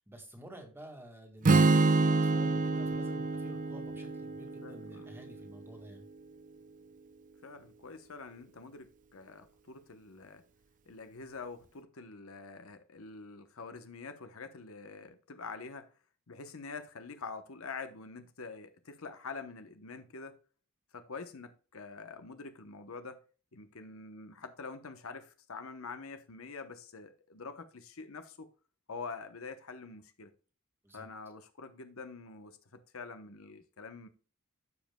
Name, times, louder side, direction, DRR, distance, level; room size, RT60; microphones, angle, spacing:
voice 1, 0.0-6.1 30.8-31.1, right 1 dB, 10° right, 1.9 m, -51 dB
Strum, 1.4-5.6, right 3 dB, 35° right, 0.5 m, -27 dB
voice 2, 4.6-5.1 7.4-10.4 10.9-15.9 16.3-20.4 20.9-23.2 23.5-28.5 28.9-30.3 30.9-34.1, left 4 dB, 70° left, 0.9 m, -46 dB
14.5 x 5.1 x 2.3 m
head